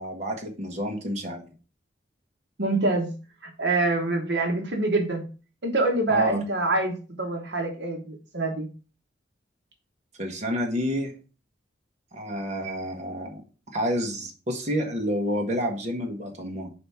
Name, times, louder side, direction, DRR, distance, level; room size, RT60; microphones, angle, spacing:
voice 1, 0.0-1.5 6.1-6.4 10.2-11.1 12.1-13.4 13.7-16.7, equal, 40° right, 1 dB, 1.2 m, -29 dB
voice 2, 2.6-3.1 3.4-5.2 5.6-8.7, right 2 dB, 65° right, 3 dB, 1.1 m, -25 dB
5.0 x 3.5 x 5.6 m, 0.35 s
head